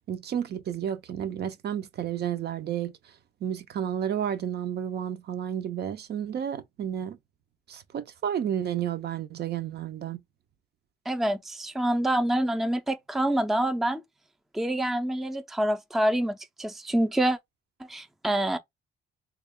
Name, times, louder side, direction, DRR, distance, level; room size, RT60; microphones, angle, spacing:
voice 1, 0.1-2.9 3.4-7.2 7.7-10.2, right 9 dB, 55° right, 0.5 m, -31 dB
voice 2, 11.1-14.0 14.5-17.4 17.9-18.6, right 1 dB, ahead, 0.4 m, -26 dB
3.5 x 2.3 x 3.5 m
cardioid pair, 90°, 20 cm